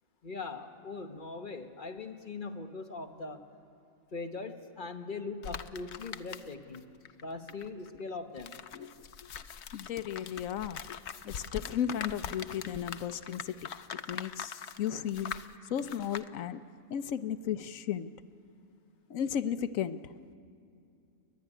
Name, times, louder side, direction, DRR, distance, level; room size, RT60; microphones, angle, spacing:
voice 1, 0.2-3.4 4.1-6.9 7.2-8.6, left 3 dB, 40° left, 5 dB, 1.4 m, -41 dB
sound 1, 5.4-6.8 7.0-16.3, left 7 dB, 60° left, 1.0 m, -42 dB
voice 2, 9.7-11.0 11.2-13.7 14.1-15.3 15.7-16.6 16.9-18.1 19.1-20.1, left 9 dB, 80° left, 12 dB, 1.1 m, -34 dB
30.0 x 12.5 x 10.0 m, 2.6 s
omnidirectional pair, 1.4 m